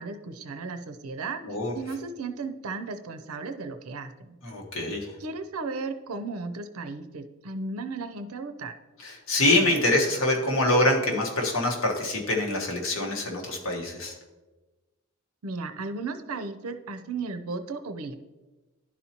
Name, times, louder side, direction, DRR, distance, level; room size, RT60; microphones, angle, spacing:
voice 1, 0.0-1.4 1.7-4.4 5.2-8.7 15.4-18.1, right 3 dB, 85° right, 8 dB, 0.6 m, -35 dB
voice 2, 4.4-5.1 9.0-14.1, left 1 dB, 65° left, -1 dB, 1.3 m, -25 dB
11.0 x 4.2 x 2.9 m, 1.2 s
head